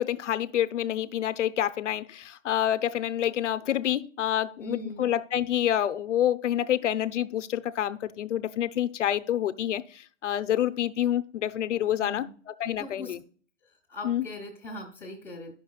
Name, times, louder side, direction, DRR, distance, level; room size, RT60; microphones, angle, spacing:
voice 1, 0.0-13.2 14.0-14.2, left 11 dB, 70° left, 0.7 m, -28 dB
voice 2, 4.6-5.1 12.0-12.3 12.8-13.1 13.6-15.5, left 2 dB, 5° left, 1.2 m, -40 dB
10.5 x 6.1 x 2.3 m
hypercardioid pair, 145°, 38 cm